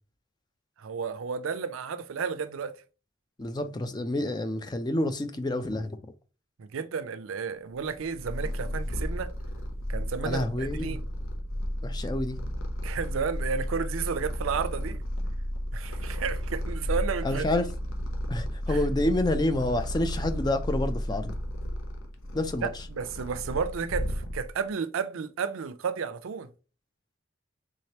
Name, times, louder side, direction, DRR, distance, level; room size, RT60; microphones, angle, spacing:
voice 1, 0.8-2.8 6.6-9.3 9.9-11.0 12.8-15.0 15.7-17.4 18.7-18.8 22.6-26.5, right 6 dB, 85° right, 0.4 m, -32 dB
voice 2, 3.4-6.0 10.2-11.0 11.8-12.4 17.2-17.7 18.3-21.4 22.3-22.7, left 1 dB, 20° left, 0.4 m, -28 dB
Purr, 7.8-24.7, equal, 85° left, 0.8 m, -33 dB
3.6 x 3.2 x 2.8 m
head